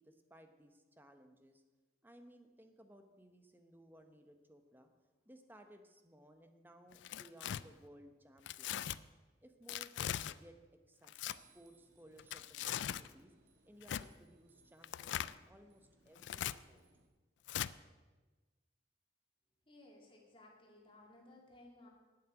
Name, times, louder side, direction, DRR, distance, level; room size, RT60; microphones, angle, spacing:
voice 1, 0.0-1.6 2.0-4.9 5.2-8.9 9.4-10.6 10.9-13.3 13.6-16.8, right 1 dB, 10° right, 6 dB, 0.8 m, -60 dB
Tearing, 6.9-7.6 8.5-9.0 9.7-10.3 11.0-11.4 12.2-13.1 13.8-14.0 14.8-15.3 16.2-16.5 17.5-17.7, left 11 dB, 70° left, 0.3 m, -40 dB
sound 1, 11.3-17.1, right 3 dB, 60° right, 1.6 m, -69 dB
voice 2, 19.7-21.9, left 2 dB, 25° left, -1 dB, 2.2 m, -59 dB
8.8 x 7.3 x 9.0 m, 1.3 s
head